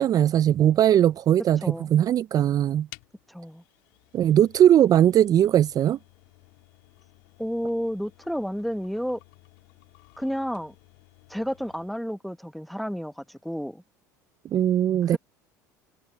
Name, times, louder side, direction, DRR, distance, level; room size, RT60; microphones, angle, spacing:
voice 1, 0.0-2.9 4.1-6.0 14.5-15.2, right 11 dB, 40° right, 0.5 m, -20 dB
sound 1, 2.9-12.0, left 30 dB, 70° left, 3.7 m, -54 dB
voice 2, 3.3-3.6 7.4-9.2 10.2-10.7 11.3-13.8 15.1-15.2, equal, ahead, 1.1 m, -31 dB
hypercardioid pair, 80°, 10 cm